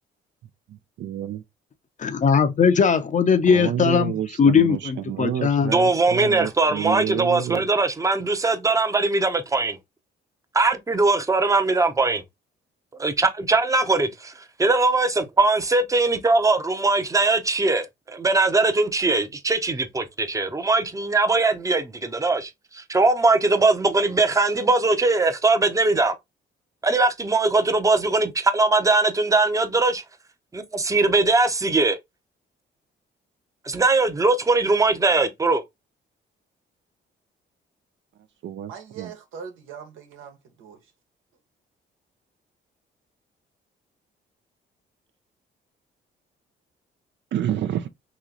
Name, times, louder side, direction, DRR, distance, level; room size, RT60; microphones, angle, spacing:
voice 1, 0.7-1.4 3.5-7.7 38.4-39.1 47.3-47.9, right 10 dB, 65° right, 0.5 m, -29 dB
voice 2, 2.0-5.7, left 6 dB, 40° left, 0.6 m, -19 dB
voice 3, 5.7-9.8 10.5-12.2 13.0-14.1 14.6-26.1 26.8-30.0 30.5-32.0 33.7-35.6, right 3 dB, 15° right, 0.7 m, -21 dB
voice 4, 38.7-40.8, right 7 dB, 90° right, 1.2 m, -41 dB
3.0 x 3.0 x 3.8 m
cardioid pair, 90°, 20 cm